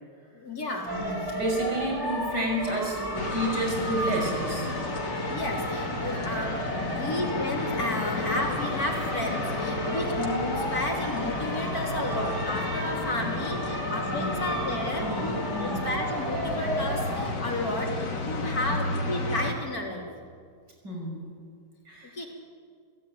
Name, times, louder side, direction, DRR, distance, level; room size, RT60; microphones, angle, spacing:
voice 1, 0.3-0.9 5.3-20.1 22.1-22.3, left 1 dB, 55° left, 0 dB, 4.1 m, -32 dB
sound 1, 0.9-17.3, equal, 10° right, 3.1 m, -33 dB
voice 2, 0.9-4.7 6.7-7.0 13.1-13.3 13.7-14.4 15.0-15.9 18.5-18.8 20.8-21.2 21.8-22.2, right 1 dB, 75° right, 1 dB, 6.8 m, -31 dB
sound 2, 3.1-19.5, left 2 dB, 85° left, 3.1 m, -33 dB
30.0 x 16.0 x 9.6 m, 2.1 s
omnidirectional pair, 1.8 m